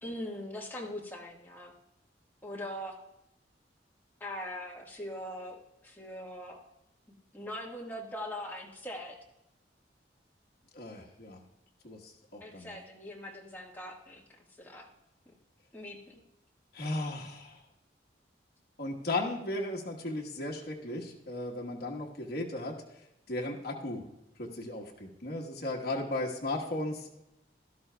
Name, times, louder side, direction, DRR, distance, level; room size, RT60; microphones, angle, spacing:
voice 1, 0.0-1.7 2.4-3.0 4.2-6.6 7.3-9.2 12.4-14.9 15.7-16.2, left 1 dB, 10° left, -2 dB, 1.5 m, -41 dB
voice 2, 10.7-11.4 11.8-12.8 16.7-17.6 18.8-22.7 23.3-24.0 24.4-27.1, left 2 dB, 60° left, -2 dB, 1.3 m, -36 dB
16.5 x 12.0 x 2.3 m, 0.89 s
head